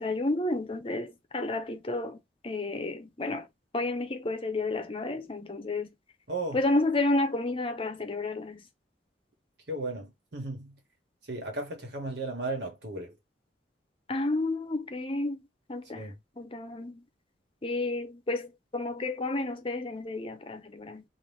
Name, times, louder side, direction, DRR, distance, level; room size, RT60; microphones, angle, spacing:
voice 1, 0.0-3.5 3.7-5.9 6.5-8.6 14.1-15.4 15.7-16.1 16.4-17.0 17.6-21.0, left 2 dB, 30° left, 0.7 m, -31 dB
voice 2, 6.3-6.6 9.7-10.8 11.3-13.1 15.9-16.2, right 2 dB, 75° right, 1.4 m, -35 dB
2.9 x 2.5 x 3.4 m
head